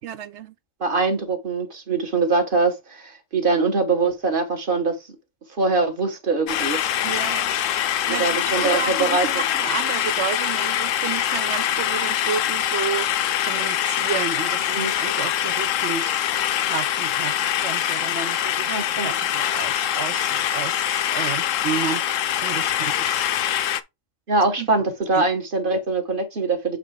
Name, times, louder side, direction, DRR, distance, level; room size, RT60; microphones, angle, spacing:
voice 1, 0.0-0.5 7.0-7.6 8.1-13.1 13.5-16.2 16.7-17.3 17.6-23.3 24.6-24.7 25.1-25.3, right 8 dB, 65° right, 0.9 m, -31 dB
voice 2, 0.8-4.9 5.6-6.8 8.1-9.3 14.7-14.9 18.7-19.1 24.3-26.8, right 3 dB, 40° right, 1.5 m, -23 dB
sound 1, 6.5-23.8, left 11 dB, 80° left, 1.0 m, -24 dB
7.5 x 3.3 x 4.8 m
omnidirectional pair, 1.3 m